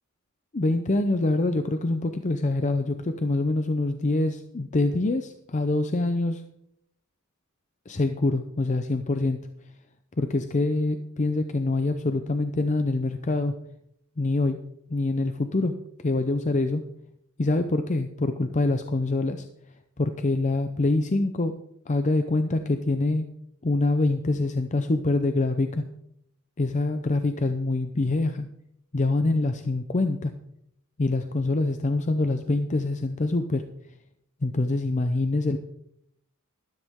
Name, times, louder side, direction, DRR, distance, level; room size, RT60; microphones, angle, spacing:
voice 1, 0.5-6.4 7.9-9.5 10.2-13.5 14.2-14.6 14.9-15.7 16.0-16.8 17.4-19.4 20.0-21.5 21.9-23.3 23.6-25.8 26.6-28.5 28.9-30.3 31.0-33.7 34.4-35.6, left 2 dB, 35° left, 8 dB, 0.6 m, -25 dB
13.0 x 13.0 x 3.6 m, 0.76 s
head